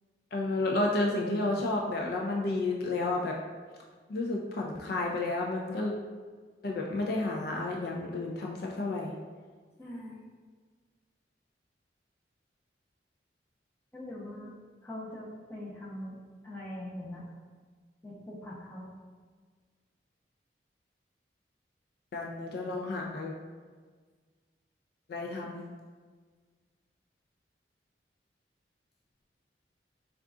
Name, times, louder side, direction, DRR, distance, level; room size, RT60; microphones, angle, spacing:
voice 1, 0.3-3.4 4.1-5.9 6.6-9.1 22.1-23.3 25.1-25.6, left 2 dB, 55° left, -1 dB, 0.3 m, -31 dB
voice 2, 9.8-10.2 13.9-14.5 14.8-16.2 16.4-17.3 18.0-18.9, left 1 dB, 15° left, -6 dB, 0.7 m, -42 dB
3.6 x 2.4 x 3.5 m, 1.5 s
head